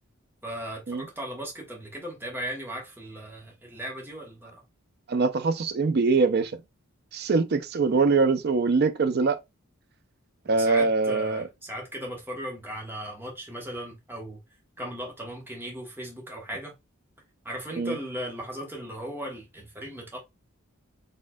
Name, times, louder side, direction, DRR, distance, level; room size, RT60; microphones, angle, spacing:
voice 1, 0.4-4.6 10.5-14.4 14.8-16.7 17.4-20.2, equal, 10° right, 1.1 m, -37 dB
voice 2, 5.1-6.5 7.1-9.4 10.5-11.5 17.8-18.0, right 4 dB, 50° right, 0.5 m, -23 dB
4.2 x 3.6 x 2.2 m
head